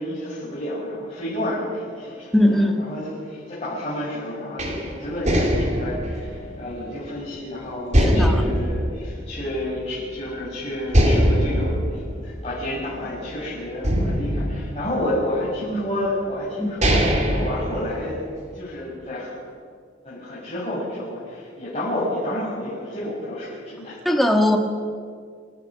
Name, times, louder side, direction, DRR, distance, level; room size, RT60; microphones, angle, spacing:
voice 1, 0.0-18.2 18.5-19.3 20.0-24.0, left 1 dB, 35° left, -11 dB, 7.2 m, -30 dB
voice 2, 2.3-2.8 8.0-8.4 16.6-16.8 24.1-24.6, left 1 dB, ahead, 3 dB, 1.7 m, -19 dB
sound 1, 4.6-7.4 7.9-9.9 10.2-10.3 10.9-13.3 13.8-15.4 16.2-16.3 16.6-18.4, equal, 35° right, 3.0 m, -22 dB
28.0 x 15.0 x 6.4 m, 2.1 s
head